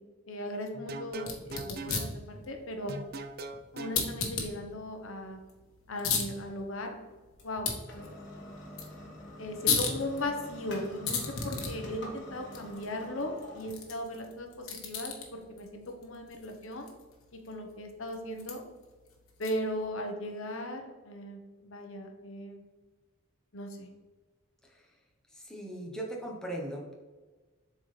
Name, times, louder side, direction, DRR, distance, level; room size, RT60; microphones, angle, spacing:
voice 1, 0.3-3.0 3.7-5.4 5.9-6.9 7.4-8.1 9.4-16.9 17.3-18.6 19.4-22.6 23.5-23.9, left 1 dB, 75° left, 4 dB, 1.0 m, -38 dB
sound 1, 0.7-2.1 2.9-4.0, right 2 dB, 45° right, 0.5 m, -40 dB
sound 2, 1.1-19.8, left 5 dB, 90° left, 1.3 m, -38 dB
sound 3, 5.3-16.4, left 1 dB, 55° left, 1.5 m, -48 dB
voice 2, 25.3-26.9, right 1 dB, 5° left, -2 dB, 0.9 m, -38 dB
7.6 x 4.4 x 3.3 m, 1.3 s
head